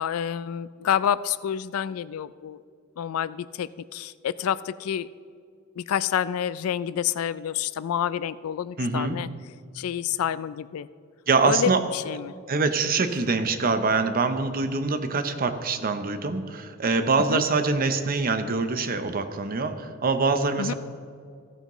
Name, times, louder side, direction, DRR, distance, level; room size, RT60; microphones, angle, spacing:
voice 1, 0.0-2.6 3.0-5.1 5.8-9.3 9.7-10.9 11.4-12.3 17.3-17.4 20.6-20.7, left 9 dB, 80° left, 17 dB, 0.3 m, -28 dB
voice 2, 8.8-9.2 11.3-11.8 12.5-20.7, right 4 dB, 45° right, 9 dB, 0.7 m, -24 dB
15.5 x 9.1 x 3.0 m, 2.2 s
head